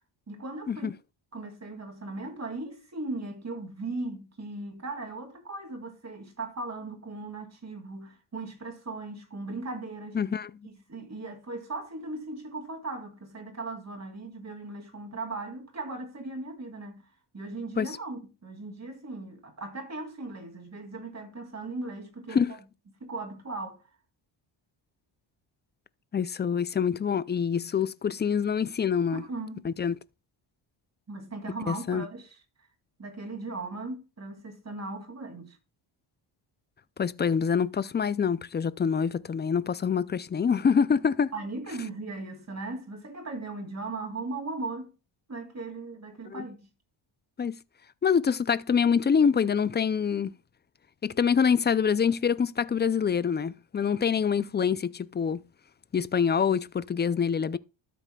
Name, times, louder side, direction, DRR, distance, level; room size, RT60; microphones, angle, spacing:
voice 1, 0.3-0.9 1.3-10.2 10.6-17.0 17.3-22.6 23.0-23.8 29.1-29.7 31.1-32.3 33.0-35.6 41.3-44.9 45.3-46.7, right 3 dB, 30° right, 2.6 m, -38 dB
voice 2, 10.1-10.5 17.8-17.9 22.3-22.5 26.1-29.2 29.6-29.9 31.7-32.1 37.0-41.3 46.3-46.4 47.4-47.6 48.0-50.3 51.0-55.4 55.9-57.6, left 6 dB, 25° left, 0.3 m, -25 dB
13.0 x 7.6 x 2.3 m
cardioid pair, 95°, 50 cm